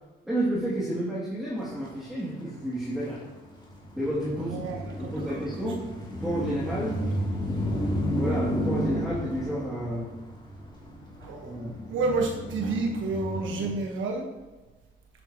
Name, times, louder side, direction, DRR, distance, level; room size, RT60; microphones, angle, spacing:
voice 1, 0.3-3.3 4.0-4.7 5.0-5.9 6.2-7.1 8.1-10.2 11.5-11.8, right 1 dB, ahead, -7 dB, 2.6 m, -31 dB
sound 1, 1.7-2.0 2.4-13.7, equal, 20° left, 2.8 m, -32 dB
voice 2, 4.5-5.1 11.2-11.6 11.9-14.3, right 3 dB, 80° right, 1 dB, 1.3 m, -29 dB
11.0 x 9.0 x 3.0 m, 1.2 s
cardioid pair, 90°, 20 cm